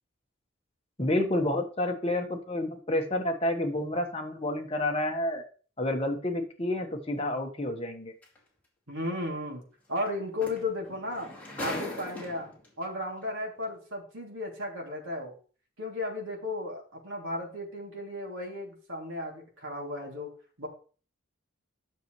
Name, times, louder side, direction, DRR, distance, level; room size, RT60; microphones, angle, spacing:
voice 1, 1.0-5.4 5.8-8.1, left 1 dB, 25° left, 3 dB, 1.3 m, -29 dB
sound 1, 8.2-8.4 10.1-10.2 10.4-12.7 13.6-13.7, left 1 dB, 5° left, 2.3 m, -38 dB
voice 2, 8.9-9.6 9.9-11.3 11.6-15.3 15.8-20.3 20.6-20.7, left 2 dB, 75° right, -1 dB, 2.8 m, -35 dB
10.0 x 6.6 x 3.1 m, 0.39 s
head